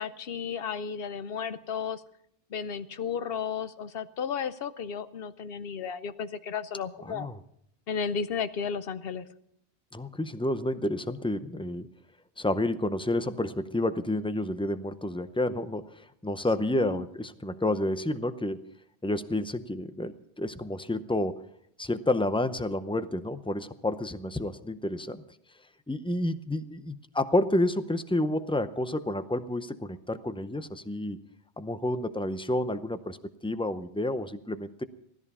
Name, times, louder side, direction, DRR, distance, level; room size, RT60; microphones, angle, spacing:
voice 1, 0.0-2.0 2.5-7.3 7.9-9.3 16.7-17.1, left 6 dB, 60° left, 13 dB, 0.9 m, -33 dB
voice 2, 7.0-7.4 9.9-11.9 12.4-18.7 19.0-21.4 21.8-25.2 25.9-31.2 31.6-33.2 33.4-34.8, left 1 dB, 10° left, 12 dB, 0.3 m, -30 dB
16.5 x 13.5 x 5.5 m, 0.70 s
omnidirectional pair, 1.2 m